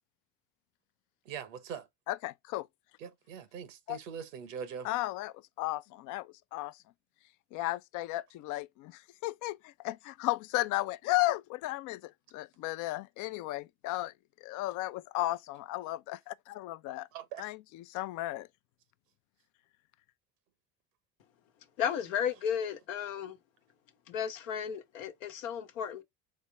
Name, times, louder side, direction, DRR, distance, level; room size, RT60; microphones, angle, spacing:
voice 1, 1.2-1.9 3.0-4.9 17.1-17.5, right 7 dB, 75° right, 1.0 m, -42 dB
voice 2, 2.1-2.7 3.9-4.0 4.8-6.8 7.5-14.1 14.4-17.1 17.4-18.5, left 17 dB, 50° left, 0.5 m, -34 dB
voice 3, 21.8-23.4 24.1-26.0, left 8 dB, 75° left, 1.0 m, -34 dB
4.3 x 3.4 x 3.2 m
hypercardioid pair, 65°, 39 cm